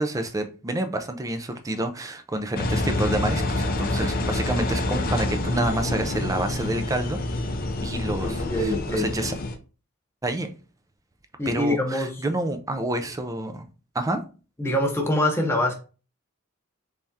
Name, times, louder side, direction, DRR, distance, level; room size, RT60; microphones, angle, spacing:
voice 1, 0.0-7.2 7.8-9.3 10.2-10.5 11.5-13.6 13.9-14.2, right 1 dB, 15° right, 0.4 m, -28 dB
Engine, 2.6-9.6, left 2 dB, 40° left, 0.5 m, -27 dB
voice 2, 8.2-9.1 11.4-12.1 14.6-15.7, left 1 dB, 10° left, 0.7 m, -24 dB
3.4 x 3.3 x 2.7 m
head